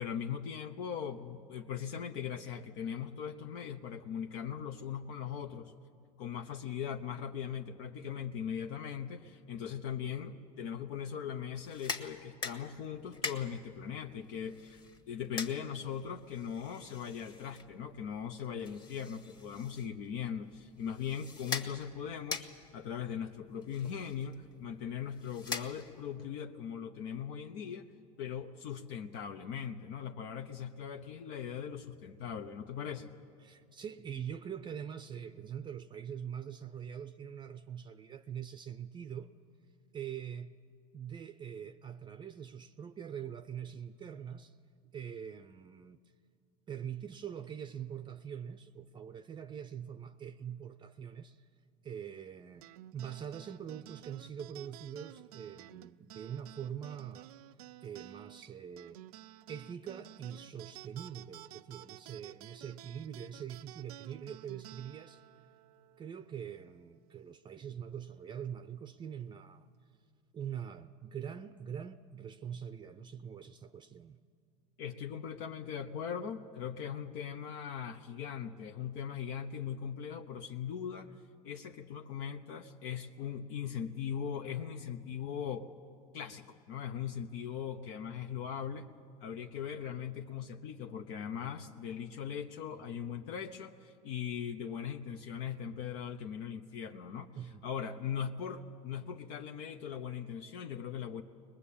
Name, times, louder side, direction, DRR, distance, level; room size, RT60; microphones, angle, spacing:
voice 1, 0.0-5.7 6.2-22.5 22.7-27.9 28.2-33.1 74.8-81.1 81.4-85.7 86.1-88.9 89.2-97.3 97.6-101.2, left 8 dB, 65° left, 1.0 m, -40 dB
sound 1, 11.5-26.2, left 4 dB, 25° left, 1.6 m, -45 dB
voice 2, 33.4-39.3 39.9-40.6 40.9-44.6 44.9-46.0 46.7-51.5 51.8-52.7 52.9-57.3 57.8-59.0 59.5-65.2 66.0-69.7 70.3-74.2 97.4-97.7, right 8 dB, 25° right, 0.6 m, -43 dB
sound 2, 52.6-67.4, right 15 dB, 85° right, 0.5 m, -53 dB
21.5 x 20.5 x 8.6 m
supercardioid pair, 115°, 19 cm